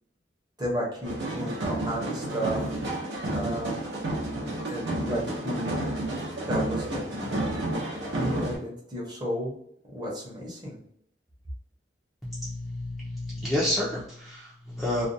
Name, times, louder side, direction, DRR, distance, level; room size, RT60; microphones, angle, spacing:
voice 1, 0.6-2.6 3.3-3.8 4.7-5.8 6.2-7.7 8.1-9.5 9.9-10.8, equal, 25° right, -4 dB, 0.8 m, -33 dB
sound 1, 1.0-8.6, right 1 dB, 70° right, 0.7 m, -31 dB
voice 2, 12.2-15.1, left 1 dB, ahead, -8 dB, 0.5 m, -30 dB
2.4 x 2.2 x 2.6 m, 0.69 s
head